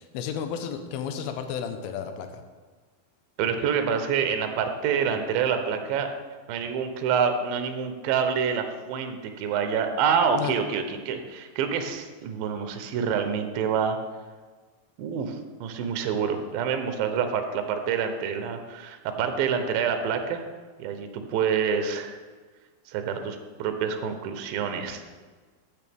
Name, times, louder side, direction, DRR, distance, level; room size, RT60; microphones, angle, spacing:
voice 1, 0.0-2.4 10.3-10.5, left 8 dB, 80° left, 7 dB, 2.5 m, -32 dB
voice 2, 3.4-6.1 6.5-14.0 15.0-20.5 20.8-22.2 22.9-25.0, right 7 dB, 75° right, 7 dB, 2.5 m, -27 dB
14.5 x 7.0 x 3.5 m, 1.4 s
omnidirectional pair, 4.5 m